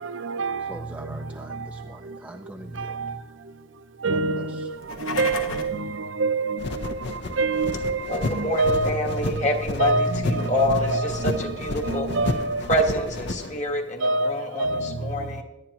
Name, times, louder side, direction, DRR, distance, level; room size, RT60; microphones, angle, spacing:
voice 1, 0.0-1.2 1.5-1.7 2.8-3.2 4.0-12.7 14.0-15.0, right 3 dB, 70° right, 0.6 m, -27 dB
voice 2, 0.6-3.1 4.1-4.7, right 1 dB, 5° right, 0.4 m, -43 dB
sound 1, 4.7-5.8, left 4 dB, 80° left, 1.2 m, -33 dB
sound 2, 6.6-13.6, left 2 dB, 60° left, 0.7 m, -32 dB
voice 3, 8.1-9.9 10.3-11.3 11.6-12.1 12.7-14.7 15.0-15.4, equal, 35° left, 1.4 m, -26 dB
17.5 x 11.0 x 2.9 m
head